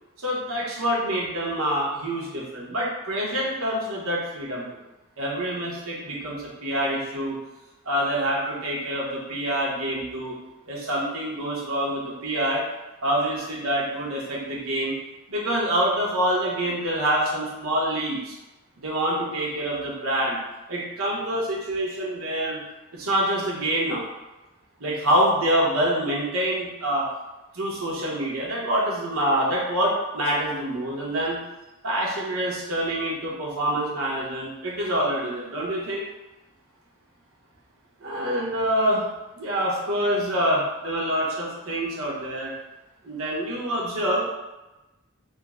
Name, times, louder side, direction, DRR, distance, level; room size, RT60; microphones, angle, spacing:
voice 1, 0.2-4.7 5.2-7.4 7.8-10.4 10.7-12.6 13.0-14.9 15.3-18.3 18.8-20.4 20.7-22.6 22.9-24.0 24.8-27.0 27.5-31.4 31.8-36.0 38.0-39.1 39.4-42.5 43.0-44.3, right 1 dB, 90° right, -4 dB, 1.0 m, -26 dB
3.6 x 2.1 x 3.6 m, 1.0 s
head